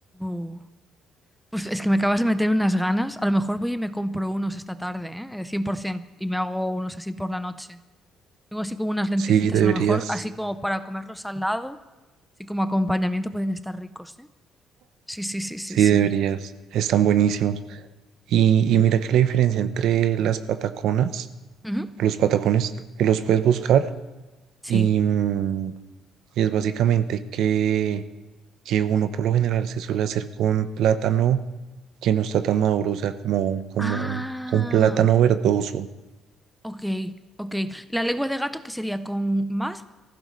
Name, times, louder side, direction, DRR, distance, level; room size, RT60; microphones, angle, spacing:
voice 1, 0.1-0.6 1.5-7.8 8.5-11.8 12.4-14.3 15.1-16.1 21.6-22.0 24.6-24.9 33.8-35.0 36.6-39.9, equal, ahead, 11 dB, 0.5 m, -27 dB
voice 2, 9.2-10.0 15.7-17.8 18.3-21.3 22.0-22.7 23.0-23.9 24.7-25.7 26.4-28.0 28.7-31.4 32.0-34.2 34.5-35.9, right 9 dB, 70° right, 11 dB, 0.8 m, -21 dB
23.5 x 15.0 x 3.2 m, 1.1 s
cardioid pair, 150°, 0 cm